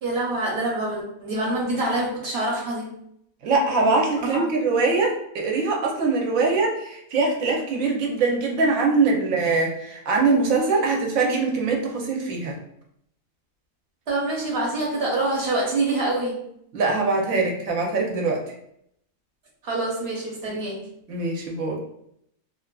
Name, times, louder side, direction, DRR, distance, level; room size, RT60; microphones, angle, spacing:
voice 1, 0.0-2.9 4.2-4.4 14.1-16.4 19.6-20.8, right 2 dB, 55° right, -3 dB, 0.9 m, -26 dB
voice 2, 3.4-12.6 16.7-18.4 20.5-20.6 21.1-21.8, right 3 dB, 85° right, 0 dB, 1.0 m, -22 dB
2.8 x 2.4 x 2.2 m, 0.73 s
omnidirectional pair, 1.4 m